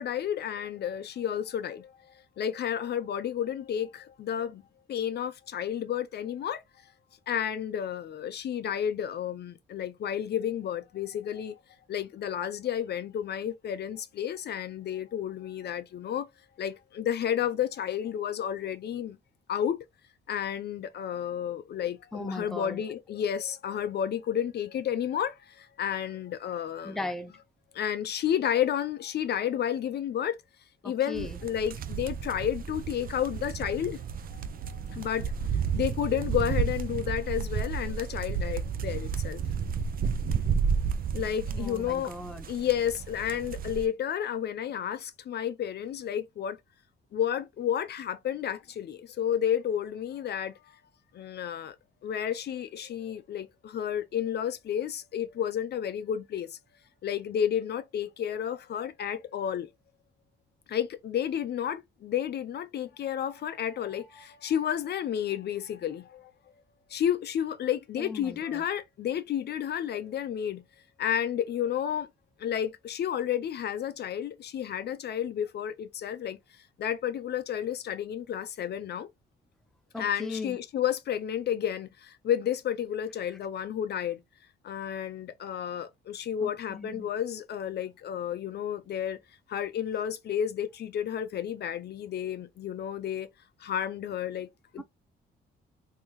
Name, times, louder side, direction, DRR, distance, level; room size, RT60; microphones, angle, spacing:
voice 1, 0.0-1.9 2.4-4.6 4.9-6.6 7.3-11.6 11.9-16.3 16.6-19.2 19.5-19.8 20.3-27.0 27.7-30.4 30.8-34.0 34.3-35.3 35.7-39.4 41.1-42.1 42.5-46.6 47.1-50.6 51.1-51.8 52.0-56.6 57.0-59.7 60.7-66.3 66.9-70.6 71.0-72.1 72.4-76.4 76.8-79.1 80.0-84.2 84.6-89.2 89.5-93.3 93.6-94.5 94.7-94.8, left 9 dB, 55° left, 0.5 m, -31 dB
voice 2, 22.1-22.8 26.8-27.3 30.8-31.4 41.5-42.5 68.0-68.6 79.9-80.6 86.4-87.1 94.8-94.9, left 2 dB, ahead, 0.5 m, -38 dB
sound 1, 31.1-43.9, right 6 dB, 45° right, 0.5 m, -32 dB
2.9 x 2.8 x 3.5 m
cardioid pair, 90°, 20 cm